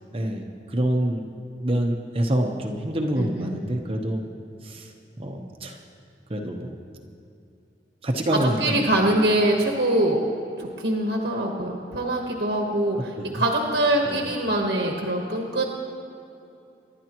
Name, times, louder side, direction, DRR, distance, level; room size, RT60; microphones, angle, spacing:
voice 1, 0.1-1.2 1.6-4.2 4.6-4.9 5.2-5.8 6.3-6.7 8.0-8.8 12.9-13.4 14.0-14.2, right 1 dB, 30° right, 2 dB, 0.9 m, -26 dB
voice 2, 3.2-3.6 8.3-10.2 10.6-15.6, right 1 dB, 75° right, 0 dB, 1.3 m, -24 dB
25.0 x 11.5 x 3.0 m, 2.7 s
head